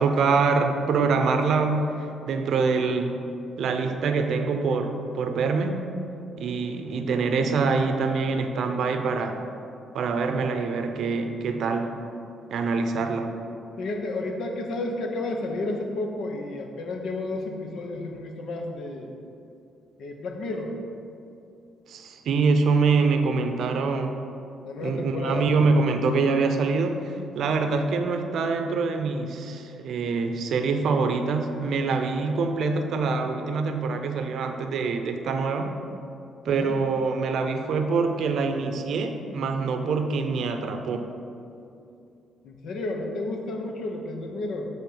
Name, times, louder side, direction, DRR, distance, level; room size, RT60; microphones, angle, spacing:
voice 1, 0.0-3.3 3.6-5.8 6.4-9.4 9.9-12.0 12.5-13.3 21.9-24.2 24.8-35.7 36.4-41.1, right 4 dB, 70° right, 6 dB, 0.6 m, -25 dB
voice 2, 13.8-19.1 20.0-20.7 24.6-25.5 36.5-36.8 42.4-44.7, left 2 dB, 70° left, 3 dB, 0.9 m, -31 dB
8.3 x 3.7 x 5.6 m, 2.6 s
cardioid pair, 90°, 0 cm